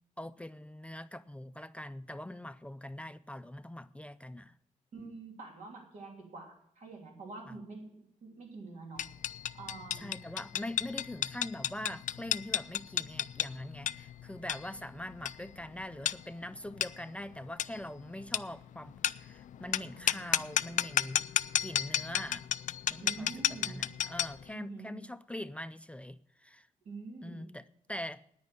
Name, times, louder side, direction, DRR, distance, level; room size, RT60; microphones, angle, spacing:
voice 1, 0.2-4.6 7.5-7.6 9.9-21.3 21.6-22.5 22.9-26.7 27.2-28.2, left 1 dB, 10° left, 0.4 m, -43 dB
voice 2, 4.9-9.1 9.5-10.2 23.0-23.9 24.5-24.9 26.8-27.4, right 3 dB, 80° right, 3.0 m, -46 dB
sound 1, 9.0-24.4, left 11 dB, 85° left, 0.4 m, -33 dB
9.7 x 9.5 x 7.6 m
wide cardioid pair, 105°, 13 cm